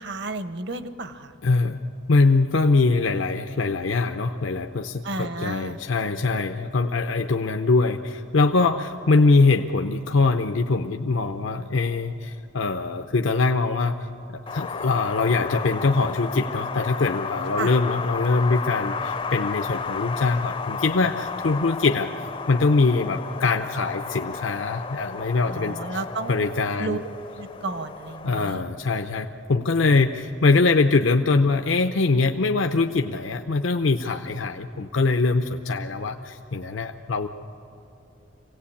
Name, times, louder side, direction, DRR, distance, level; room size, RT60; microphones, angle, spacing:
voice 1, 0.0-1.3 5.0-5.8 17.5-17.7 25.5-26.5 26.8-27.0 27.4-28.6, right 2 dB, 65° right, 11 dB, 1.0 m, -32 dB
voice 2, 1.4-1.8 2.1-14.0 14.3-22.1 22.5-26.0 26.3-27.0 28.2-37.3, left 3 dB, 90° left, 6 dB, 0.7 m, -23 dB
Wind, 14.5-28.5, left 5 dB, 25° left, 0.4 m, -33 dB
26.5 x 17.5 x 8.5 m, 2.8 s
head